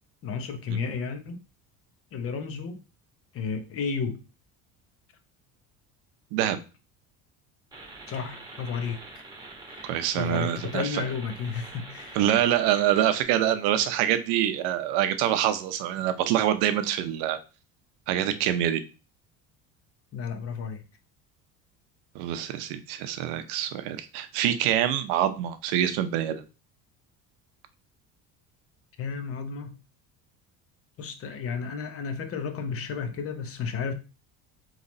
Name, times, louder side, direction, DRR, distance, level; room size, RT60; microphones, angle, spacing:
voice 1, 0.2-1.4 2.1-2.8 3.3-4.2 8.1-9.0 9.7-9.9 10.1-12.2 20.1-20.8 29.0-29.8 31.0-33.9, left 5 dB, 40° left, 7 dB, 0.8 m, -32 dB
sound 1, 7.7-13.2, right 2 dB, 10° right, 1.2 m, -45 dB
voice 2, 9.8-11.1 12.1-17.4 18.1-18.8 22.1-26.4, right 11 dB, 85° right, 10 dB, 0.7 m, -25 dB
3.9 x 3.1 x 4.0 m, 0.33 s
cardioid pair, 135°, 35 cm